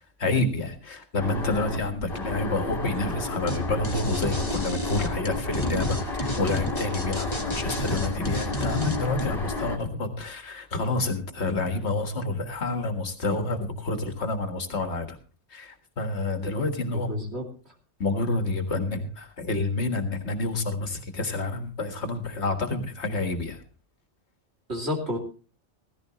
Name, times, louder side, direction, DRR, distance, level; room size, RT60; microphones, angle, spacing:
voice 1, 0.2-15.2 15.5-17.1 18.0-23.6, left 2 dB, 70° left, 7 dB, 2.0 m, -28 dB
sound 1, 1.2-9.8, left 2 dB, 50° left, 2.1 m, -32 dB
sound 2, 3.5-3.6 3.8-9.3, equal, 25° left, 1.8 m, -31 dB
voice 2, 16.9-17.5 24.7-25.2, left 1 dB, 65° right, 1 dB, 3.1 m, -30 dB
15.5 x 15.0 x 3.0 m, 0.36 s
omnidirectional pair, 1.2 m